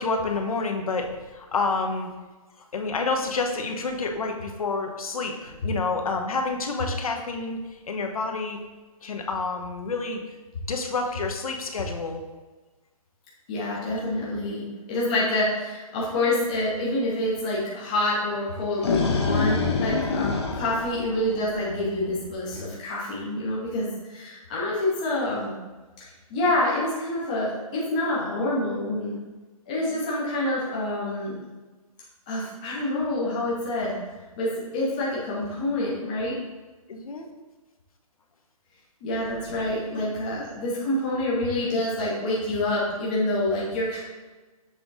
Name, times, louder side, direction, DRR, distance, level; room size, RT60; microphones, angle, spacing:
voice 1, 0.0-2.1 2.7-7.6 7.9-8.6 9.0-10.2 10.7-12.2 29.9-30.0 36.9-37.3 39.6-39.7 39.9-40.1 40.4-40.5, left 3 dB, 70° left, 3 dB, 1.0 m, -29 dB
voice 2, 13.5-25.5 26.3-29.2 29.7-31.4 32.3-34.0 34.4-36.3 39.0-44.0, left 1 dB, 15° left, -6 dB, 0.6 m, -27 dB
sound 1, 18.5-21.7, left 4 dB, 45° left, 0.8 m, -26 dB
6.8 x 3.6 x 4.0 m, 1.2 s
hypercardioid pair, 180°, 19 cm